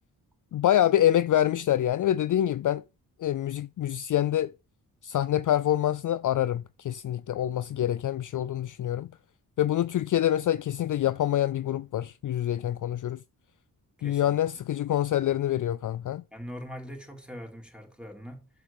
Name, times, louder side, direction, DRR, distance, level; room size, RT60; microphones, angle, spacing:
voice 1, 0.5-2.8 3.2-4.5 5.0-9.1 9.6-13.2 14.0-16.2, left 12 dB, 55° left, 0.5 m, -26 dB
voice 2, 14.0-14.6 16.3-18.5, equal, ahead, 3.2 m, -42 dB
7.5 x 6.6 x 7.1 m
cardioid pair, 75°, 38 cm